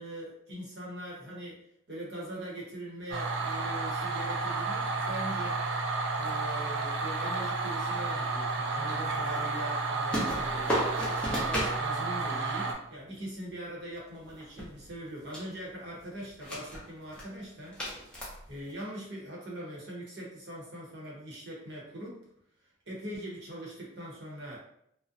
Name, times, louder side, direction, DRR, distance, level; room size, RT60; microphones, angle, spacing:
voice 1, 0.0-1.6 1.9-5.6 6.2-10.7 11.3-17.8 18.5-22.2 22.9-24.6, right 1 dB, 60° right, -4 dB, 0.9 m, -41 dB
sound 1, 3.1-12.7, right 3 dB, 80° right, 0.4 m, -31 dB
sound 2, 10.1-11.8 14.1-15.1 15.3-15.6 16.3-16.8 17.1-17.3 17.7-18.7, equal, 5° left, 0.6 m, -33 dB
2.5 x 2.1 x 2.5 m, 0.73 s
head